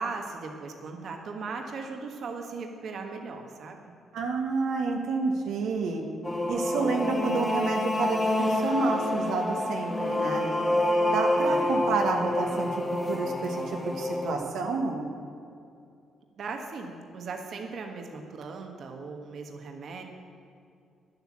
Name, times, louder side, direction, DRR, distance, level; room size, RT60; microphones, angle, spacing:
voice 1, 0.0-3.8 11.4-11.8 16.4-20.0, right 4 dB, 60° right, 3 dB, 1.3 m, -38 dB
voice 2, 4.1-6.0 6.5-10.5 11.1-12.7 13.1-15.1, right 4 dB, 80° right, 1 dB, 1.3 m, -29 dB
sound 1, 6.2-14.3, left 1 dB, 15° left, 1.6 m, -28 dB
10.5 x 8.1 x 7.4 m, 2.5 s
cardioid pair, 90°, 0 cm